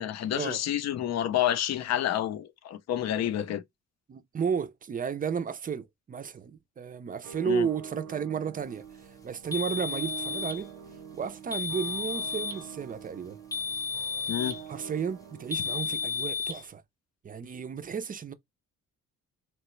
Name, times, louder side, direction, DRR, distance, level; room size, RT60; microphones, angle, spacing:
voice 1, 0.0-3.6 7.5-7.7 14.3-14.6, left 11 dB, 60° left, 0.6 m, -29 dB
voice 2, 4.1-8.9 9.2-10.7 11.1-13.4 14.7-16.8 17.2-18.3, right 7 dB, 30° right, 0.4 m, -33 dB
sound 1, 7.2-16.2, right 8 dB, 80° right, 0.7 m, -46 dB
sound 2, 9.5-10.6 11.5-12.6 13.5-14.7 15.5-16.6, left 5 dB, 10° left, 0.7 m, -33 dB
2.9 x 2.2 x 3.0 m
cardioid pair, 90°, 30 cm